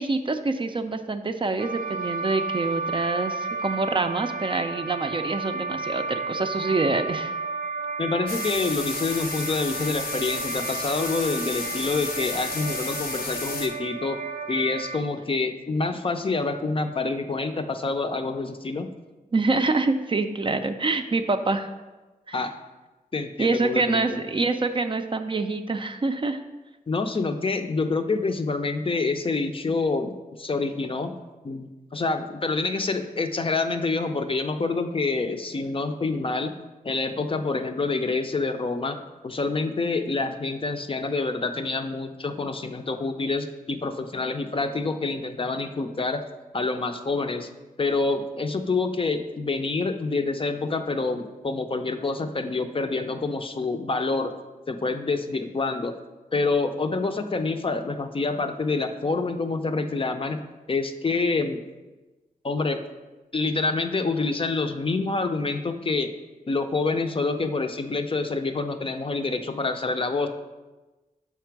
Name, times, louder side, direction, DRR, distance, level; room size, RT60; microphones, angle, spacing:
voice 1, 0.0-7.4 19.3-21.7 22.3-22.4 23.4-26.4, right 3 dB, 35° right, 8 dB, 0.4 m, -26 dB
sound 1, 1.6-15.0, right 4 dB, 80° right, 0.6 m, -32 dB
voice 2, 8.0-14.2 14.5-18.9 22.3-22.5 23.1-24.0 26.9-31.2 31.4-36.6 36.8-46.2 46.5-47.5 47.8-54.3 54.7-56.0 56.3-60.4 60.7-61.6 62.4-62.8 63.3-66.1 66.5-70.3, left 3 dB, 35° left, 7 dB, 0.5 m, -27 dB
sound 2, 8.3-13.7, left 3 dB, 85° left, 0.8 m, -33 dB
5.8 x 4.4 x 4.6 m, 1.2 s
wide cardioid pair, 80°, 15 cm